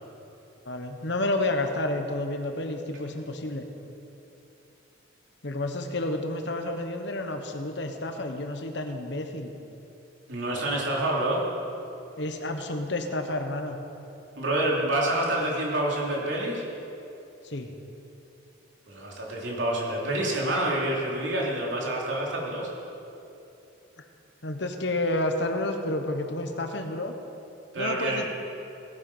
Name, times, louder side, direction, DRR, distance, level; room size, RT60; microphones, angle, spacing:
voice 1, 0.6-3.6 5.4-9.5 12.2-13.8 17.4-17.7 24.4-27.1 27.8-28.3, left 1 dB, 60° left, 5 dB, 1.2 m, -30 dB
voice 2, 10.3-11.4 14.4-16.6 18.9-22.7 27.7-28.3, right 1 dB, 70° right, -3 dB, 3.0 m, -27 dB
17.5 x 9.1 x 5.5 m, 2.8 s
head